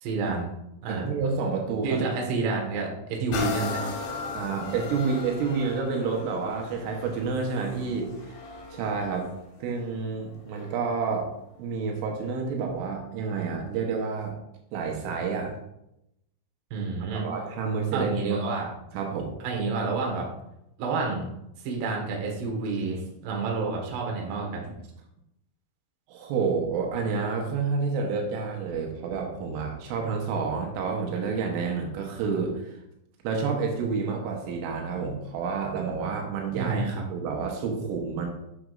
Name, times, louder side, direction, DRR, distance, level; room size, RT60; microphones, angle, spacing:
voice 1, 0.0-0.5 0.8-1.1 1.8-3.8 16.7-17.3 17.9-18.7 19.4-20.3 20.8-21.3 21.6-24.7 36.5-37.0, right 4 dB, 65° right, 0 dB, 3.2 m, -29 dB
voice 2, 0.9-2.0 4.4-8.1 8.7-9.3 9.6-11.3 11.6-14.4 14.7-15.5 17.1-18.1 18.9-19.4 26.1-32.8 33.2-38.3, right 5 dB, 85° right, 1 dB, 3.5 m, -29 dB
sound 1, 3.3-10.9 11.5-11.6, left 4 dB, 75° left, 3.2 m, -37 dB
9.4 x 6.2 x 2.5 m, 0.83 s
omnidirectional pair, 5.7 m